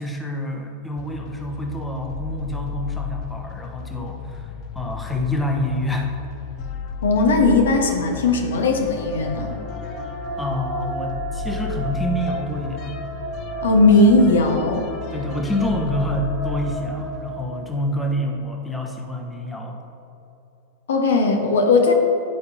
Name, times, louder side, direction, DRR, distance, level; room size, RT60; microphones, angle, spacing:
voice 1, 0.0-6.1 10.4-12.9 15.1-19.8, equal, 5° left, 1 dB, 0.9 m, -27 dB
sound 1, 1.0-18.3, left 7 dB, 40° left, 0.4 m, -34 dB
voice 2, 7.0-9.5 13.6-14.8 20.9-21.9, left 3 dB, 65° left, 3 dB, 0.8 m, -17 dB
sound 2, 8.9-18.1, right 1 dB, 25° right, 1.4 m, -34 dB
10.5 x 5.3 x 2.8 m, 2.9 s
figure-of-eight pair, 90°, 0 cm